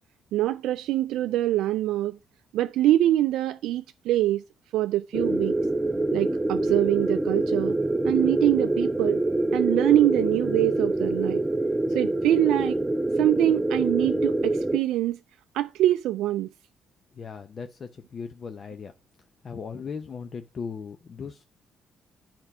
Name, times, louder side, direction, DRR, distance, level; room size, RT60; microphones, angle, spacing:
voice 1, 0.3-2.2 2.5-4.4 4.7-5.6 6.1-7.8 8.0-9.2 9.5-11.4 11.9-12.8 13.2-15.2 15.5-16.5, right 14 dB, 90° right, 0.3 m, -24 dB
sound 1, 5.1-14.8, right 2 dB, 15° right, 0.5 m, -25 dB
voice 2, 17.1-18.9 19.4-21.4, left 5 dB, 50° left, 0.7 m, -37 dB
8.0 x 4.5 x 5.7 m
cardioid pair, 90°, 0 cm